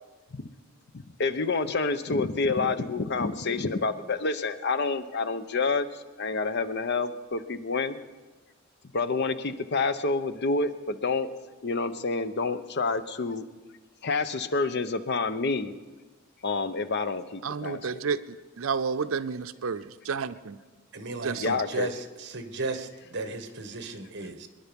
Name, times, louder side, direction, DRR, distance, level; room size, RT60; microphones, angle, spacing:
voice 1, 1.2-8.0 8.9-11.3 11.6-13.5 14.0-15.7 16.4-18.0 21.4-21.9, left 3 dB, 55° left, 12 dB, 0.8 m, -28 dB
voice 2, 17.4-20.6 21.2-21.5, right 5 dB, 85° right, 12 dB, 0.6 m, -31 dB
voice 3, 20.9-24.5, right 3 dB, 60° right, 8 dB, 1.4 m, -35 dB
24.5 x 10.5 x 5.3 m, 1.3 s
head